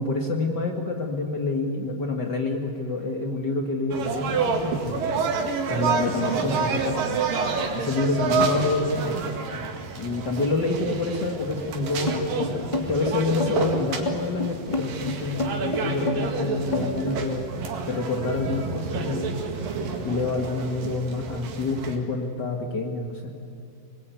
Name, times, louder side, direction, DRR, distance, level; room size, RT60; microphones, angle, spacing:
voice 1, 0.0-4.9 5.7-7.2 7.8-9.3 10.0-17.4 17.8-19.4 20.0-23.3, left 3 dB, 45° left, 3 dB, 1.5 m, -27 dB
sound 1, 3.9-22.0, right 4 dB, 65° right, 3.6 m, -29 dB
sound 2, 12.1-17.2, left 2 dB, 15° left, 1.2 m, -29 dB
24.5 x 21.0 x 9.3 m, 2.7 s
omnidirectional pair, 4.5 m